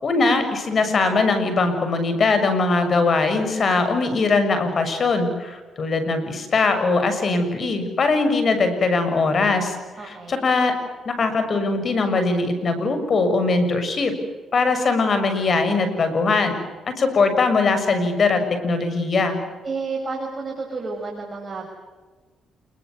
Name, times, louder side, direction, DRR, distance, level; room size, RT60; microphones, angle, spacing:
voice 1, 0.0-9.8 10.0-10.7 11.1-14.1 14.5-16.6 17.0-19.4, left 3 dB, 45° left, 9 dB, 7.0 m, -21 dB
voice 2, 10.0-10.5 19.6-21.7, right 4 dB, 30° right, 0 dB, 6.2 m, -31 dB
28.5 x 22.0 x 8.1 m, 1.3 s
cardioid pair, 90°, 0 cm